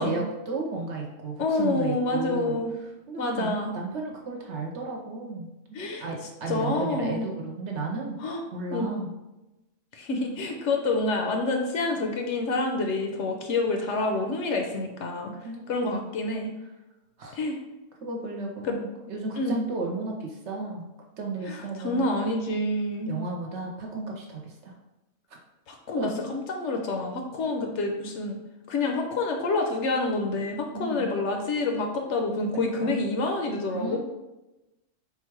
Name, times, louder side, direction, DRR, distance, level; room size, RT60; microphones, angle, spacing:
voice 1, 0.0-2.6 3.1-5.5 6.0-8.2 8.5-9.1 15.4-16.2 17.2-17.4 18.0-20.9 21.2-22.1 23.0-24.7 26.0-26.1 30.7-31.0 32.5-33.0 33.7-34.0, right 3 dB, 60° right, 0 dB, 1.0 m, -34 dB
voice 2, 1.4-2.7 3.2-3.7 5.7-6.0 6.5-7.3 8.2-8.4 8.7-8.9 9.9-15.3 15.7-16.5 17.3-17.6 19.4-19.5 21.5-23.2 25.7-28.4 28.7-34.0, left 2 dB, 70° left, 2 dB, 0.9 m, -28 dB
3.9 x 2.3 x 4.5 m, 0.98 s
omnidirectional pair, 1.4 m